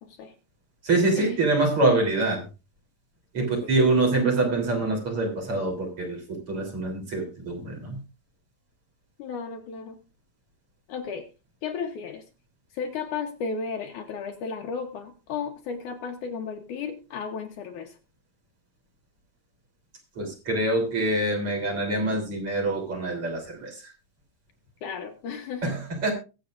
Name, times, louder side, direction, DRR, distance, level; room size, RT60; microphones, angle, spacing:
voice 1, 0.0-0.3 1.2-1.5 3.4-3.7 9.2-10.0 10.9-11.3 11.6-12.2 12.7-18.0 24.8-25.8, left 5 dB, 70° left, 4 dB, 2.3 m, -34 dB
voice 2, 0.8-2.4 3.3-8.0 20.2-23.8 25.6-26.1, right 2 dB, 40° right, 0 dB, 4.0 m, -25 dB
22.5 x 7.8 x 2.5 m, 0.30 s
omnidirectional pair, 4.1 m